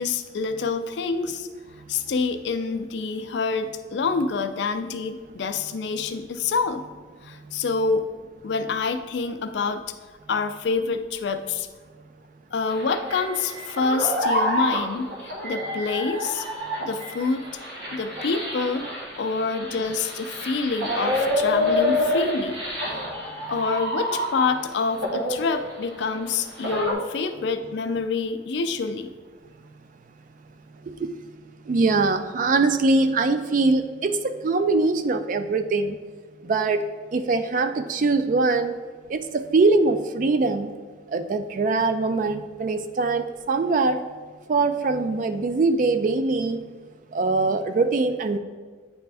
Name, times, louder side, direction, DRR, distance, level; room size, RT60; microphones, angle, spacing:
voice 1, 0.0-1.5 1.9-6.8 7.2-8.1 8.4-9.8 10.3-11.7 12.5-16.5 16.8-17.5 17.9-18.8 19.2-22.6 23.5-29.1, left 4 dB, 65° left, 9 dB, 0.4 m, -27 dB
sound 1, 12.7-24.7 25.0-26.9, left 1 dB, 65° right, 1.2 m, -27 dB
voice 2, 31.7-36.0 36.4-36.9 37.1-38.8 39.1-40.7 41.1-44.0 44.5-46.6 47.1-48.4, right 3 dB, 45° right, 9 dB, 0.3 m, -22 dB
9.2 x 3.4 x 3.3 m, 1.5 s
head